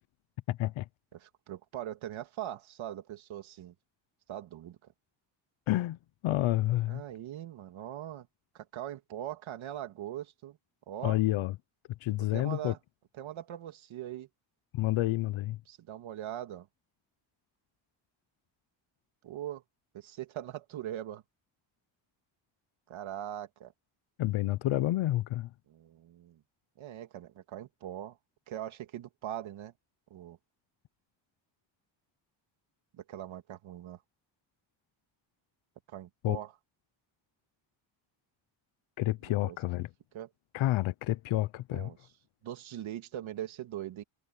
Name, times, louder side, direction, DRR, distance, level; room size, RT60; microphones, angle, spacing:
voice 1, 0.5-0.9 5.7-6.0 6.2-7.0 11.0-11.6 12.0-12.7 14.7-15.6 24.2-25.5 36.2-36.4 39.0-39.9 40.5-41.9, left 16 dB, 90° left, 0.8 m, -29 dB
voice 2, 1.1-3.7 4.3-4.8 6.9-8.3 8.5-10.6 10.9-11.2 12.3-12.8 13.2-14.3 15.7-16.7 19.2-19.6 19.9-21.2 22.9-23.7 25.7-26.4 26.8-28.2 28.5-29.7 30.1-30.4 32.9-34.0 35.9-36.5 39.4-39.6 40.1-40.3 41.7-42.0 42.4-44.0, right 12 dB, 85° right, 2.3 m, -41 dB
wide cardioid pair, 170°, 46 cm